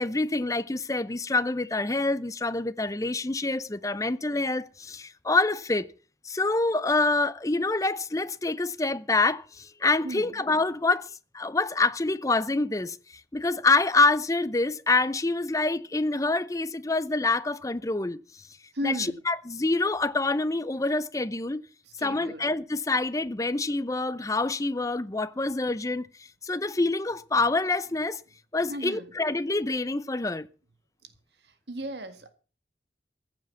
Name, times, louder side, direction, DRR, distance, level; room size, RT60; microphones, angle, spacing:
voice 1, 0.0-5.9 6.2-13.0 13.3-18.2 18.8-18.9 19.3-21.6 22.0-26.1 26.4-28.2 28.5-30.5, left 3 dB, 20° left, 0.6 m, -26 dB
voice 2, 18.7-19.2 21.8-22.5 28.7-29.1 31.0-31.1 31.4-32.3, equal, 75° right, 1.9 m, -35 dB
15.0 x 7.5 x 7.2 m
head